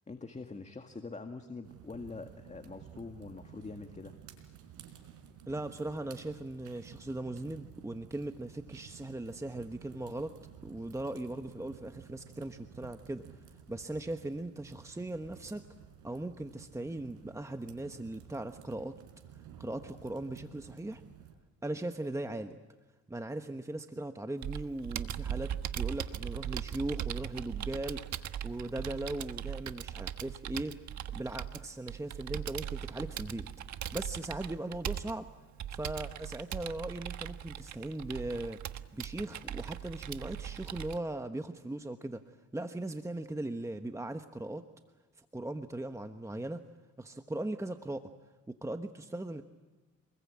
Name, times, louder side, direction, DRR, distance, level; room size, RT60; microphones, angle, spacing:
voice 1, 0.1-4.1, left 3 dB, 25° left, 6 dB, 1.9 m, -44 dB
sound 1, 1.6-21.3, right 8 dB, 90° right, 4.4 m, -54 dB
voice 2, 5.5-15.6 16.0-19.0 19.3-21.0 21.6-22.6 23.1-30.8 31.1-33.5 33.9-35.3 35.7-44.6 45.2-46.6 47.0-48.1 48.5-49.4, right 1 dB, 10° right, 8 dB, 1.2 m, -39 dB
Computer keyboard, 24.4-41.0, right 10 dB, 70° right, 1.3 m, -39 dB
27.5 x 21.0 x 8.7 m, 1.3 s
cardioid pair, 90°, 30 cm